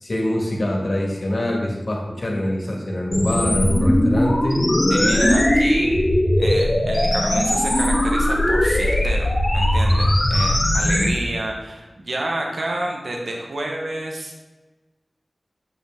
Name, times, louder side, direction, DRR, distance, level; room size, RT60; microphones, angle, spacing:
voice 1, 0.0-4.7, left 1 dB, 55° left, -1 dB, 1.8 m, -24 dB
sound 1, 3.1-11.1, left 1 dB, 40° left, 1.5 m, -19 dB
voice 2, 4.9-5.9 6.4-14.4, right 1 dB, 70° right, 0 dB, 1.1 m, -29 dB
8.1 x 5.5 x 3.7 m, 1.2 s
wide cardioid pair, 85°, 0 cm